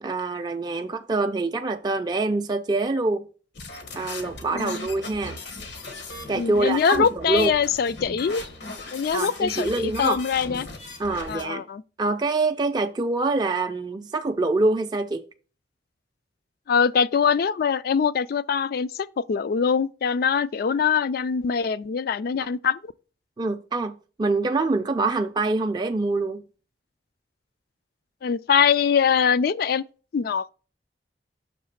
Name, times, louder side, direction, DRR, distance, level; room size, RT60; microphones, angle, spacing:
voice 1, 0.0-3.3 4.0-5.4 6.3-7.5 9.1-10.2 11.0-11.6 12.0-15.3 23.4-26.4, right 3 dB, 25° right, 0.4 m, -25 dB
sound 1, 3.5-11.4, left 3 dB, 80° left, 1.2 m, -38 dB
voice 2, 4.5-4.9 6.3-8.4 8.9-10.7 11.3-11.8 16.7-22.9 28.2-29.8 30.1-30.5, left 6 dB, 60° left, 0.3 m, -23 dB
6.7 x 3.1 x 5.7 m
head